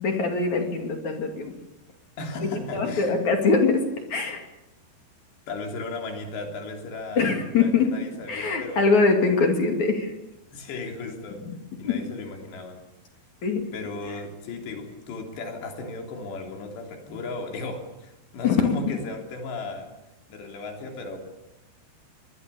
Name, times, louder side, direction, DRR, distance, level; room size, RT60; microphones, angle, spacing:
voice 1, 0.0-1.5 2.4-3.8 4.1-4.4 7.2-7.9 8.3-10.1 11.4-11.5 11.8-11.9 13.4-13.6 18.4-18.8, left 4 dB, 45° left, 4 dB, 3.3 m, -23 dB
voice 2, 2.2-3.3 5.5-8.9 10.5-11.5 11.8-12.9 13.7-19.9 20.3-21.2, left 3 dB, 65° left, 3 dB, 5.4 m, -36 dB
23.5 x 22.5 x 7.1 m, 0.97 s
omnidirectional pair, 5.4 m